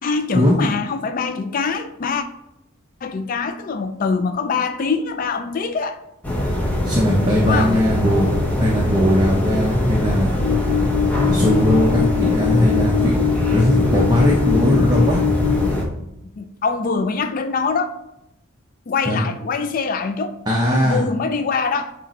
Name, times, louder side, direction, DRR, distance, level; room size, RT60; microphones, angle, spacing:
voice 1, 0.0-2.2 3.0-6.0 7.3-7.8 16.4-18.0 18.9-20.4 20.7-21.9, left 4 dB, 40° left, 0.4 m, -23 dB
sound 1, 6.2-15.8, left 1 dB, 5° left, 1.0 m, -22 dB
voice 2, 6.8-8.3 8.6-10.3 11.2-13.1 13.5-15.2 19.1-19.2 20.5-21.0, equal, 20° right, 0.8 m, -18 dB
sound 2, 10.4-15.6, left 10 dB, 70° left, 1.1 m, -23 dB
8.1 x 3.0 x 4.3 m
head